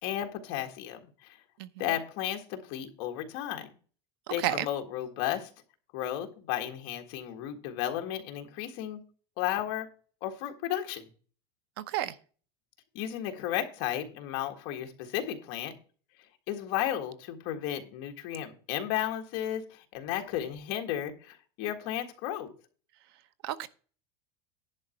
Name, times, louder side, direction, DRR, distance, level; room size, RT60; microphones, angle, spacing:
voice 1, 0.0-1.4 1.8-3.7 4.3-5.5 5.9-9.0 9.4-9.9 10.2-11.1 12.9-15.7 16.5-22.5, left 11 dB, 45° left, 1.6 m, -34 dB
voice 2, 4.3-4.7 11.8-12.1 23.4-23.7, right 13 dB, 65° right, 0.8 m, -31 dB
11.0 x 4.1 x 7.7 m
supercardioid pair, 170°, 14 cm